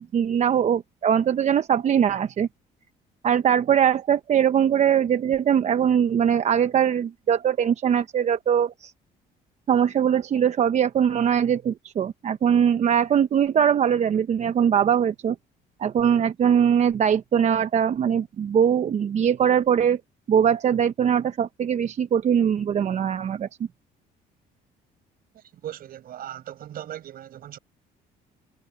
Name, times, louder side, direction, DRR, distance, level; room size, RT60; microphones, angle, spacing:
voice 1, 0.0-2.5 3.2-8.9 9.7-15.4 15.8-20.0 20.3-23.5, right 8 dB, 45° right, 0.8 m, -21 dB
voice 2, 25.3-27.6, right 11 dB, 60° right, 5.1 m, -38 dB
cardioid pair, 110°, 17 cm